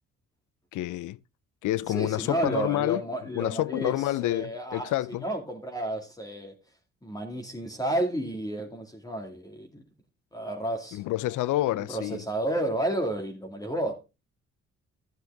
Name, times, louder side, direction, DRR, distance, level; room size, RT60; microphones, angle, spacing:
voice 1, 0.7-1.2 1.6-3.0 3.3-5.2 10.9-12.2, left 15 dB, 80° left, 0.6 m, -28 dB
voice 2, 1.9-3.9 4.2-6.5 7.0-9.8 10.3-11.0 11.7-13.9, right 1 dB, 10° left, 2.3 m, -31 dB
12.5 x 7.8 x 3.4 m
cardioid pair, 90°, 30 cm